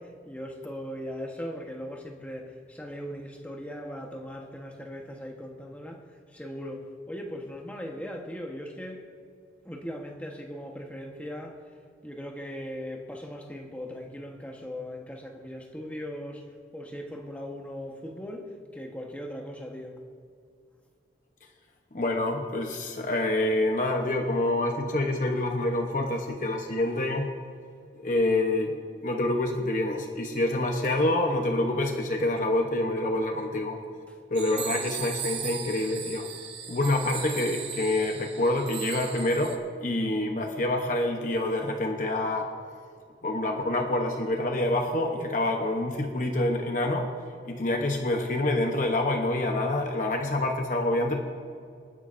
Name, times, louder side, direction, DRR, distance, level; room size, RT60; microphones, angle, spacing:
voice 1, 0.0-9.0 9.6-11.6 12.0-20.0 34.1-34.2, equal, 10° left, 1 dB, 1.2 m, -39 dB
voice 2, 21.9-27.3 28.0-28.7 29.0-33.8 34.3-36.3 36.7-42.5 43.2-47.1 47.4-51.2, left 1 dB, 45° left, 2 dB, 0.9 m, -27 dB
sound 1, 34.3-39.6, right 7 dB, 85° right, 1.5 m, -37 dB
27.0 x 10.0 x 2.6 m, 2.3 s
head